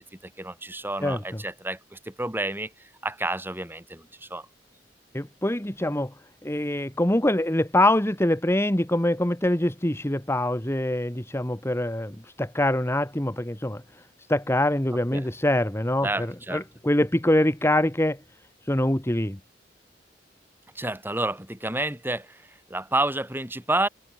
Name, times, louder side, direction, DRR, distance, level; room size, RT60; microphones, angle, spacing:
voice 1, 0.2-2.7 3.0-4.5 15.1-15.2 16.0-16.6 20.8-22.4 22.7-23.9, right 2 dB, 10° right, 7.5 m, -29 dB
voice 2, 5.1-6.1 6.4-13.8 14.3-18.2 18.7-19.4, left 1 dB, 15° left, 1.7 m, -24 dB
head